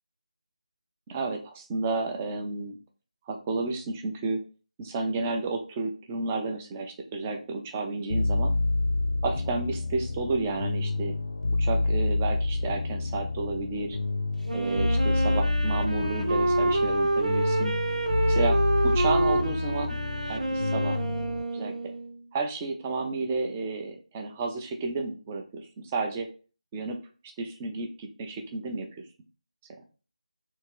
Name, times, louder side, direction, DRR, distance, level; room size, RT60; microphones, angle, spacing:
voice 1, 1.1-2.8 3.3-4.4 4.8-8.5 9.2-11.1 11.6-14.0 14.5-17.7 18.3-18.6 18.8-20.0 20.3-21.0 21.5-21.9 22.3-25.7 25.9-26.3 26.7-27.0 27.4-28.9, right 3 dB, 10° right, 3 dB, 0.4 m, -31 dB
sound 1, 8.1-21.4, left 2 dB, 50° left, 0.6 m, -28 dB
Wind instrument woodwind instrument, 14.5-22.2, right 2 dB, 75° right, 0.9 m, -28 dB
3.6 x 2.8 x 4.5 m, 0.37 s
figure-of-eight pair, 165°, 4 cm